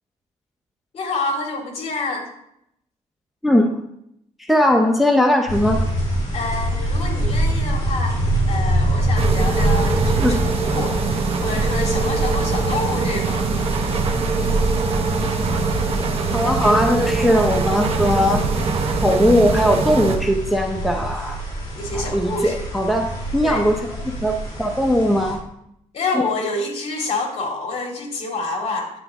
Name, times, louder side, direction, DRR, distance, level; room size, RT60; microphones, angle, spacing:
voice 1, 0.9-2.3 6.3-11.0 11.4-13.6 21.8-22.6 23.4-23.7 25.9-28.9, left 3 dB, 50° left, 1 dB, 2.4 m, -27 dB
voice 2, 4.4-5.8 10.2-10.4 16.3-18.5 19.0-21.4 21.9-23.8 24.2-25.4, equal, ahead, 2 dB, 0.7 m, -19 dB
sound 1, 5.5-25.3, right 1 dB, 30° left, 4.5 m, -25 dB
sound 2, 9.2-20.2, right 4 dB, 50° right, 1.1 m, -23 dB
10.0 x 8.4 x 3.6 m, 0.78 s
cardioid pair, 155°, 13 cm